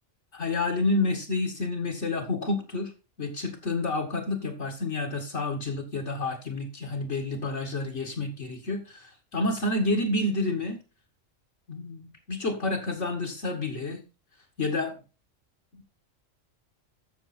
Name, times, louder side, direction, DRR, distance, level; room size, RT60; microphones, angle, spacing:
voice 1, 0.3-2.9 3.2-10.8 11.7-14.0 14.6-15.0, left 2 dB, 60° left, -1 dB, 2.2 m, -29 dB
14.5 x 6.7 x 4.4 m, 0.32 s
omnidirectional pair, 1.3 m